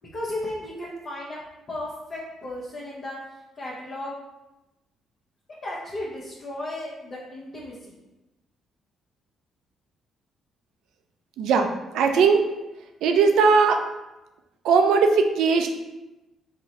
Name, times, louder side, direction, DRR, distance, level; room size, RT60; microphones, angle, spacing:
voice 1, 0.1-1.4 1.7-3.2 3.6-4.1 5.6-8.0, left 1 dB, 50° left, -7 dB, 0.8 m, -34 dB
voice 2, 11.4-11.7 11.9-12.4 13.0-13.8 14.6-15.7, right 5 dB, 80° right, 5 dB, 0.3 m, -19 dB
3.8 x 2.1 x 2.9 m, 1.0 s
supercardioid pair, 70°, 0 cm